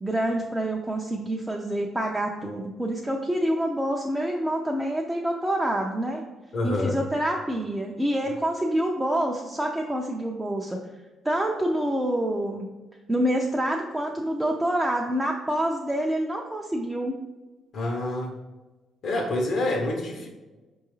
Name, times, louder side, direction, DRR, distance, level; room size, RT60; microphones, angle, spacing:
voice 1, 0.0-6.2 6.6-10.8 11.2-12.7 13.1-17.2, right 1 dB, 10° right, 0 dB, 0.4 m, -27 dB
voice 2, 6.5-7.0 17.7-18.4 19.0-20.3, left 2 dB, 65° left, 0 dB, 0.7 m, -27 dB
4.6 x 2.3 x 3.0 m, 1.2 s
cardioid pair, 90°, 0 cm